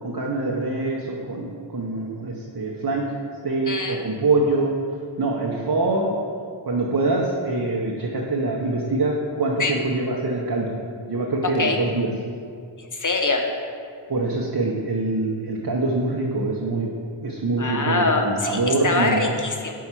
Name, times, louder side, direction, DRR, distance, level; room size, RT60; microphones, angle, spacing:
voice 1, 0.0-3.0 3.4-4.7 5.2-6.1 6.7-10.7 11.1-12.1 14.1-16.9 17.2-19.3, right 2 dB, 45° right, -2 dB, 0.8 m, -24 dB
voice 2, 3.7-4.0 9.6-9.8 11.6-11.8 12.8-13.5 17.6-19.7, left 3 dB, 40° left, 3 dB, 0.8 m, -24 dB
5.4 x 4.6 x 6.0 m, 2.3 s
wide cardioid pair, 50°, 48 cm